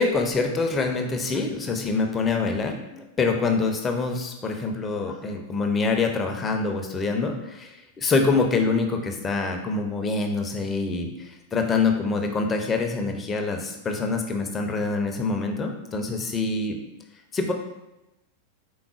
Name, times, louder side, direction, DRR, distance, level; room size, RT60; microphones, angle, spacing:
voice 1, 0.0-16.8 17.3-17.5, left 4 dB, 20° left, 4 dB, 0.6 m, -25 dB
4.7 x 3.6 x 2.4 m, 0.95 s
figure-of-eight pair, 90°, 0 cm